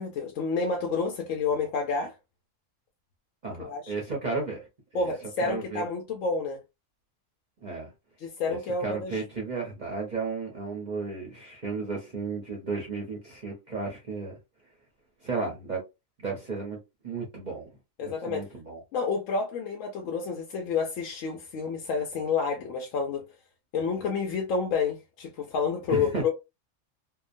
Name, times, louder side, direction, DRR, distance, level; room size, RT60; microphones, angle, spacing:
voice 1, 0.0-2.1 3.6-3.9 4.9-6.6 8.2-9.2 18.0-18.4 18.9-23.2 23.7-26.3, left 5 dB, 75° left, 0.9 m, -29 dB
voice 2, 3.4-4.7 4.9-5.0 5.4-5.9 7.6-7.9 8.5-14.4 15.2-15.8 16.2-16.8 17.0-17.7 18.0-18.8 25.9-26.3, right 4 dB, 45° right, 0.7 m, -33 dB
2.8 x 2.0 x 2.4 m
omnidirectional pair, 1.4 m